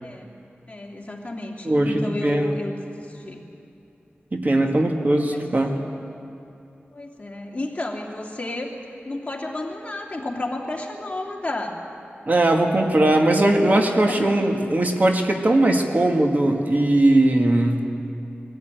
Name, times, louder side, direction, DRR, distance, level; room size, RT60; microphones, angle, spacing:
voice 1, 0.0-0.3 0.7-3.4 4.5-4.8 5.3-5.4 6.9-8.8 9.0-11.9 13.1-13.3 14.1-14.3 17.9-18.0, left 2 dB, 35° left, 0 dB, 2.6 m, -32 dB
voice 2, 1.6-2.5 4.3-5.8 12.3-17.9, right 1 dB, 40° right, 2 dB, 1.9 m, -19 dB
22.0 x 15.0 x 9.1 m, 2.7 s
wide cardioid pair, 95°, 4 cm